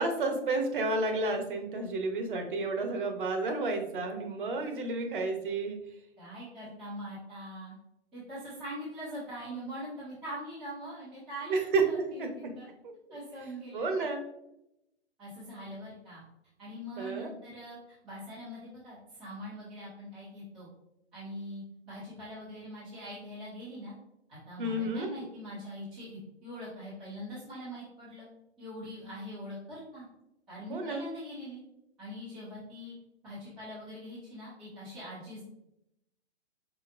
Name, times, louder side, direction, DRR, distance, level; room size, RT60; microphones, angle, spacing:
voice 1, 0.0-5.8 11.5-12.3 12.8-13.2 13.7-14.2 17.0-17.3 24.6-25.1 30.7-31.0, right 3 dB, 50° right, 5 dB, 0.9 m, -31 dB
voice 2, 6.2-7.7 8.1-11.5 11.8-12.7 13.1-13.9 15.2-16.2 16.6-17.8 18.0-20.7 21.1-23.9 24.3-28.3 28.6-30.1 30.5-31.6 32.0-32.9 33.2-35.4, equal, ahead, -14 dB, 0.4 m, -42 dB
5.0 x 4.0 x 2.5 m, 0.84 s
hypercardioid pair, 160°, 33 cm